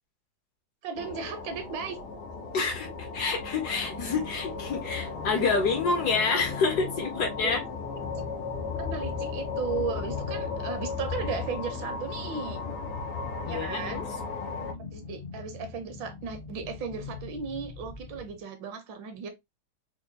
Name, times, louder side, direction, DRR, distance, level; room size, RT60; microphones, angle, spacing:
voice 1, 0.8-2.0 2.6-2.7 7.4-7.6 8.8-12.6 13.5-14.0 14.9-19.3, right 5 dB, 75° right, 1.4 m, -36 dB
sound 1, 1.0-14.7, left 5 dB, 85° left, 1.4 m, -36 dB
voice 2, 2.5-2.9 3.1-7.6 13.5-14.0, left 4 dB, 65° left, 1.0 m, -28 dB
sound 2, 3.4-18.4, left 4 dB, 45° left, 0.7 m, -43 dB
4.5 x 2.3 x 2.6 m
omnidirectional pair, 2.1 m